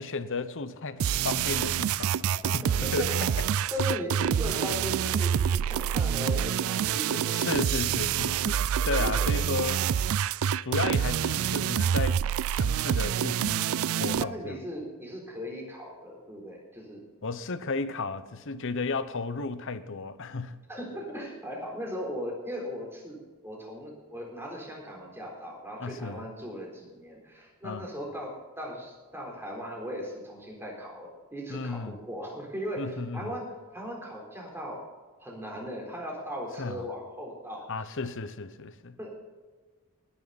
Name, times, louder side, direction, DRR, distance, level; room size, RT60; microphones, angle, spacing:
voice 1, 0.0-3.5 6.9-9.9 10.6-14.6 17.2-20.6 25.8-26.3 27.6-27.9 31.5-32.0 32.8-33.4 36.6-36.8 37.7-39.0, left 3 dB, 60° left, 0.9 m, -34 dB
sound 1, 1.0-14.2, right 8 dB, 65° right, 0.3 m, -27 dB
voice 2, 2.4-3.3 3.7-7.5 8.8-9.7 14.0-17.0 20.7-33.5 33.7-34.8 35.2-37.7 39.0-39.1, equal, 10° right, 3.9 m, -38 dB
19.0 x 10.5 x 4.1 m
head